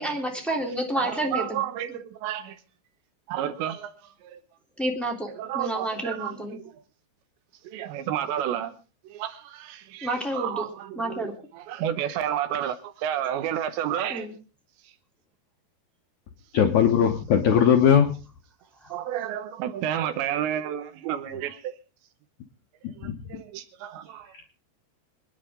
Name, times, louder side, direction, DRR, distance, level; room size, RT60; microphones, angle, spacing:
voice 1, 0.0-1.6 1.9-2.0 4.8-5.3 5.5-6.6 10.0-10.7 10.9-11.3 14.1-14.3 18.8-19.1, right 1 dB, ahead, 2.2 m, -29 dB
voice 2, 1.0-2.6 3.3-3.9 4.2-4.4 5.4-6.7 7.6-8.8 9.0-11.3 11.5-14.3 18.9-21.7 23.0-24.5, right 10 dB, 80° right, 3.3 m, -31 dB
voice 3, 16.5-18.1 23.0-23.2, left 8 dB, 75° left, 1.7 m, -19 dB
24.5 x 10.5 x 3.7 m
omnidirectional pair, 5.1 m